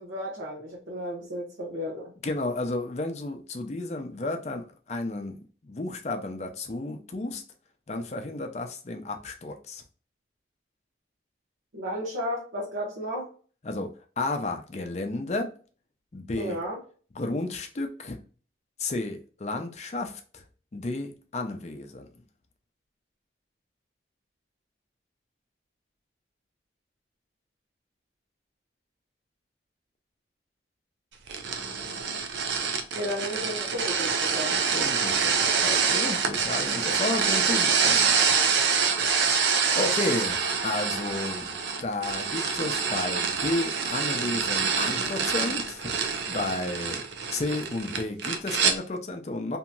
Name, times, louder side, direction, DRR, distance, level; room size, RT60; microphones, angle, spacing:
voice 1, 0.0-2.1 11.7-13.3 16.4-16.8 32.9-34.6, equal, 90° right, 1.0 m, -33 dB
voice 2, 2.2-5.4 5.6-7.4 7.9-9.8 13.6-13.9 14.2-15.5 16.1-16.6 17.2-18.2 18.8-20.4 20.7-22.1 34.7-38.3 39.7-46.0 46.3-47.0 47.3-49.6, left 2 dB, 35° left, 0.5 m, -32 dB
sound 1, 31.3-48.8, right 6 dB, 70° right, 0.5 m, -26 dB
2.9 x 2.8 x 2.2 m
head